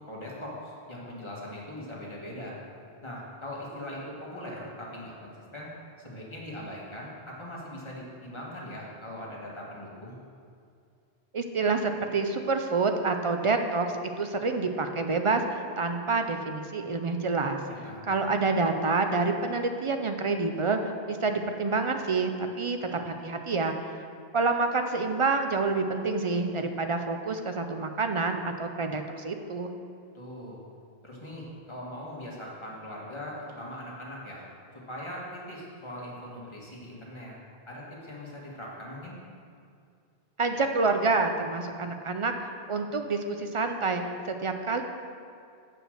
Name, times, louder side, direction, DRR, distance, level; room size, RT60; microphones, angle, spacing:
voice 1, 0.1-2.6 3.0-5.7 6.0-10.2 17.7-18.1 30.1-30.6 31.0-34.4 34.7-37.3 37.7-39.2, left 1 dB, 30° left, -5 dB, 1.7 m, -40 dB
voice 2, 11.3-17.6 18.1-23.9 24.3-29.7 40.4-42.3 42.7-44.8, right 3 dB, 50° right, 5 dB, 0.4 m, -28 dB
7.8 x 5.1 x 6.4 m, 2.3 s
omnidirectional pair, 1.0 m